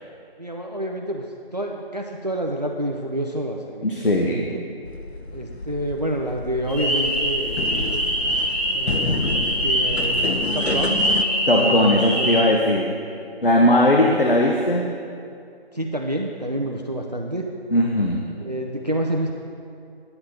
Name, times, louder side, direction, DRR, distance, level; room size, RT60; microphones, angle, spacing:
voice 1, 0.4-1.3 1.5-4.6 5.3-8.0 8.7-9.2 9.6-10.2 10.5-11.0 11.5-12.4 13.9-14.2 15.7-17.5 18.4-19.3, right 1 dB, 40° right, 1 dB, 0.5 m, -28 dB
voice 2, 3.8-4.5 11.5-12.9 13.4-14.9 17.7-18.2, left 1 dB, 60° left, -1 dB, 1.0 m, -18 dB
sound 1, 4.8-11.2, left 3 dB, 85° left, 0.7 m, -29 dB
sound 2, 6.7-12.4, equal, 10° right, 1.6 m, -23 dB
9.7 x 9.0 x 4.3 m, 2.4 s
figure-of-eight pair, 165°, 31 cm